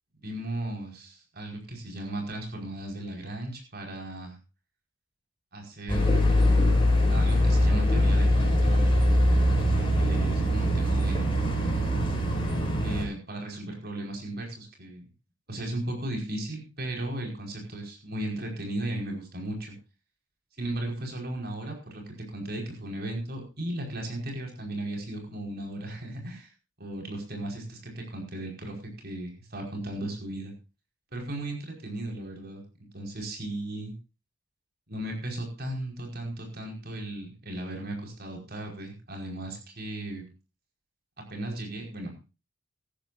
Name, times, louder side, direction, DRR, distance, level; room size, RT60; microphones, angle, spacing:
voice 1, 0.2-4.4 5.5-6.0 7.1-9.0 10.0-11.4 12.8-15.0 15.5-19.7 20.6-26.5 26.8-30.5 31.1-32.6 32.9-33.9 34.9-40.2 41.3-42.1, right 1 dB, 50° right, 2 dB, 5.1 m, -36 dB
sound 1, 5.9-13.1, left 1 dB, 25° left, 5.8 m, -22 dB
18.5 x 13.5 x 2.6 m, 0.31 s
head